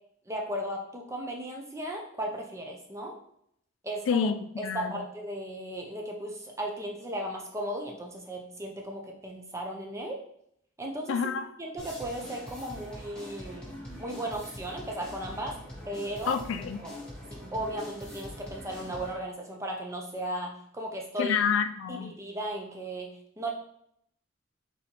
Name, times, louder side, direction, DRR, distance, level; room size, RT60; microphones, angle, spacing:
voice 1, 0.3-3.2 3.8-4.3 4.6-10.2 10.8-11.2 11.6-13.7 14.0-15.6 15.9-16.4 16.8-16.9 17.3-21.4 21.9-23.1 23.4-23.5, right 1 dB, 15° right, 0 dB, 0.6 m, -36 dB
voice 2, 4.1-5.0 11.1-11.5 16.3-16.8 21.2-22.1, left 6 dB, 85° left, 9 dB, 0.3 m, -28 dB
sound 1, 11.8-19.2, equal, 5° left, 1.1 m, -43 dB
4.1 x 4.1 x 3.0 m, 0.71 s
head